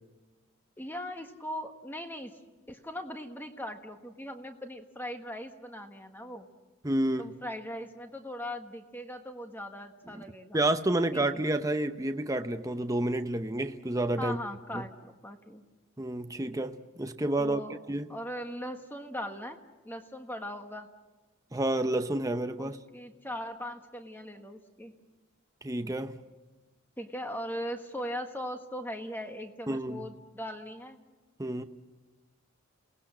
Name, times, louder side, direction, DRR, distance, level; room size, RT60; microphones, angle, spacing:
voice 1, 0.8-2.4 2.7-6.5 7.2-10.6 11.1-11.4 14.2-15.6 17.4-17.8 18.1-19.6 19.8-20.9 22.6-24.9 27.0-31.0, equal, 10° left, 1.4 m, -39 dB
voice 2, 6.8-7.3 10.1-10.2 10.5-14.4 14.7-14.8 16.0-18.2 21.5-22.8 25.6-26.2 29.7-30.1 31.4-31.6, right 1 dB, 15° right, 0.7 m, -30 dB
28.5 x 18.5 x 7.5 m
head